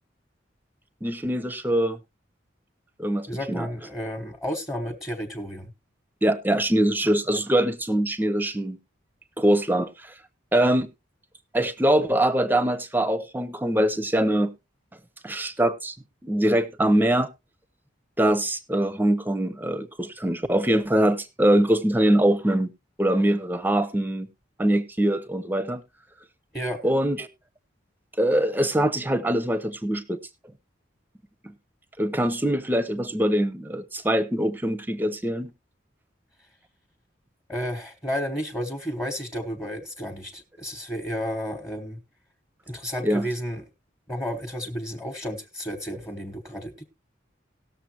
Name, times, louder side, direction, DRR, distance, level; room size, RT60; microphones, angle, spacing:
voice 1, 1.0-2.0 3.0-3.7 6.2-8.8 9.4-10.1 10.5-10.9 11.5-14.5 15.2-16.0 16.2-17.3 18.2-22.7 23.0-24.3 24.6-25.8 26.8-27.3 28.2-30.2 31.4-31.5 32.0-35.5 43.0-43.3, right 1 dB, 10° right, 0.8 m, -23 dB
voice 2, 3.3-5.7 26.5-26.8 37.5-42.0 42.7-43.6 44.1-46.8, equal, 15° left, 1.2 m, -32 dB
18.5 x 6.8 x 2.9 m
head